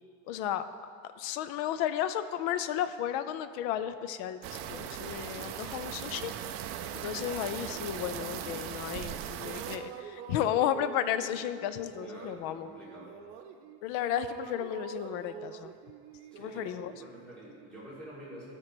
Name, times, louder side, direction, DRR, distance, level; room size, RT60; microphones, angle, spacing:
voice 1, 0.3-0.7 1.0-6.3 6.9-12.7 13.8-15.7 16.4-16.9, left 10 dB, 50° left, 12 dB, 0.5 m, -33 dB
sound 1, 4.4-9.8, right 10 dB, 40° right, 0.4 m, -39 dB
sound 2, 7.7-9.1 9.4-13.8 14.1-17.9, right 8 dB, 80° right, 0.7 m, -46 dB
voice 2, 12.0-13.2 16.3-16.7 17.0-18.6, equal, 5° left, -9 dB, 2.3 m, -48 dB
12.5 x 4.4 x 6.1 m, 2.3 s
cardioid pair, 170°, 33 cm